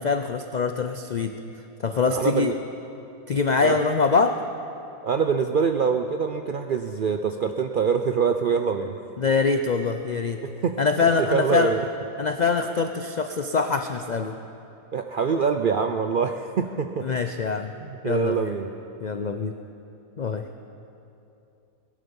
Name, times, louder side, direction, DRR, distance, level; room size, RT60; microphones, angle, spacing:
voice 1, 0.0-1.4 1.8-2.6 3.3-4.4 9.2-10.4 10.8-11.7 12.2-14.4 17.0-17.7 18.0-18.5 19.0-19.6 20.2-20.5, left 4 dB, 85° left, 7 dB, 0.4 m, -24 dB
voice 2, 2.1-2.5 3.6-3.8 5.0-9.0 10.4-10.7 11.3-11.8 14.9-17.1 17.8-18.7, right 6 dB, 65° right, 6 dB, 0.5 m, -24 dB
19.5 x 11.5 x 5.3 m, 2.7 s
omnidirectional pair, 1.5 m